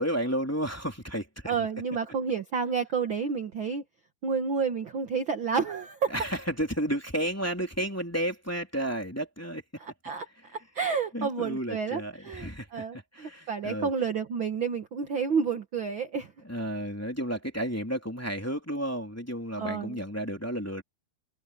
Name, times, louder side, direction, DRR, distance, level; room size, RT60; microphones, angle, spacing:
voice 1, 0.0-1.7 6.1-9.6 11.1-13.9 16.4-20.8, right 1 dB, 5° left, 2.8 m, -32 dB
voice 2, 1.5-3.8 4.2-6.1 9.8-10.2 10.5-16.3 19.6-20.0, right 5 dB, 60° right, 1.3 m, -30 dB
omnidirectional pair, 4.4 m